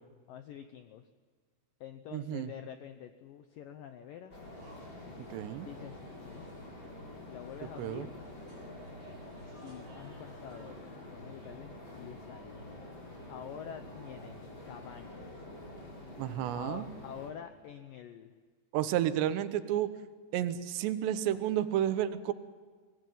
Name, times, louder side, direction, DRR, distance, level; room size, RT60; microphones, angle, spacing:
voice 1, 0.3-1.1 1.8-4.4 5.6-6.5 7.3-8.2 9.6-12.7 13.3-15.5 16.5-18.3, left 9 dB, 85° left, 8 dB, 1.9 m, -47 dB
voice 2, 2.1-2.5 5.2-5.7 7.8-8.1 16.2-16.8 18.7-19.9 20.3-22.3, right 11 dB, 75° right, 11 dB, 3.1 m, -31 dB
sound 1, 4.3-17.3, left 1 dB, 25° left, 4.9 m, -47 dB
sound 2, 4.4-10.7, right 1 dB, 20° right, 7.6 m, -57 dB
25.0 x 18.5 x 9.3 m, 1.5 s
omnidirectional pair, 5.2 m